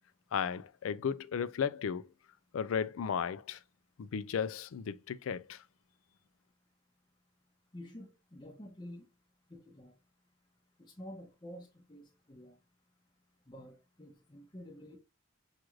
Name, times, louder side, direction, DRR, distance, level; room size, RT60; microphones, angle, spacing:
voice 1, 0.3-2.1 2.5-3.6 4.0-5.6, left 7 dB, 85° left, 0.4 m, -35 dB
voice 2, 7.7-9.0 9.5-9.9 10.8-12.6 13.5-15.0, equal, 20° left, 0.8 m, -49 dB
6.2 x 2.5 x 3.0 m
head